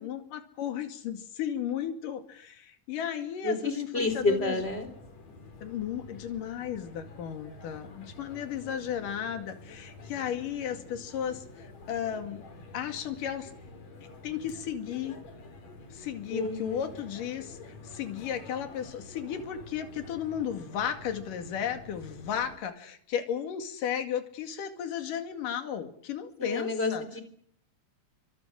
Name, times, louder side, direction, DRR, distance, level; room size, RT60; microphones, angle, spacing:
voice 1, 0.0-4.6 5.6-12.4 12.7-13.5 14.2-15.2 15.9-17.6 17.8-27.0, left 9 dB, 75° left, 7 dB, 3.8 m, -34 dB
voice 2, 3.4-4.9 16.3-16.8 26.4-27.2, left 2 dB, 20° left, 8 dB, 3.6 m, -29 dB
sound 1, 4.0-22.6, left 3 dB, 55° left, 5.0 m, -48 dB
27.5 x 24.5 x 6.4 m, 0.66 s
omnidirectional pair, 3.8 m